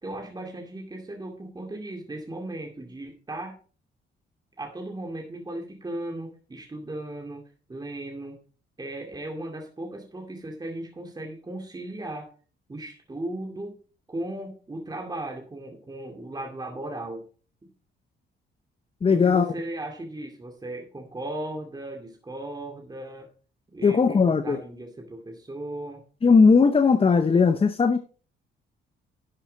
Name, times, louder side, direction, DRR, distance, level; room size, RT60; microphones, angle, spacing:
voice 1, 0.0-3.6 4.6-7.4 7.7-8.4 8.8-12.3 12.7-13.7 14.1-17.2 19.1-23.3 23.7-26.0, right 1 dB, 20° right, 1 dB, 2.3 m, -36 dB
voice 2, 19.0-19.5 23.8-24.6 26.2-28.0, left 5 dB, 30° left, 10 dB, 0.8 m, -18 dB
11.5 x 7.3 x 4.0 m, 0.38 s
cardioid pair, 90°, 20 cm